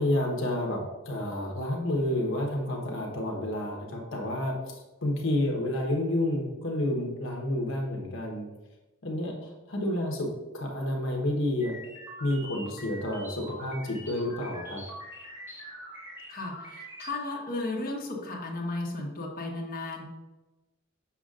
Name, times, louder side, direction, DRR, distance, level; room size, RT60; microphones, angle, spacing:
voice 1, 0.0-8.5 9.0-11.8 12.2-14.8, left 1 dB, 65° left, 0 dB, 1.1 m, -30 dB
sound 1, 11.6-17.1, equal, 10° right, 1.9 m, -44 dB
voice 2, 16.3-20.0, left 2 dB, 45° left, -1 dB, 1.2 m, -34 dB
7.0 x 6.4 x 2.5 m, 1.1 s
head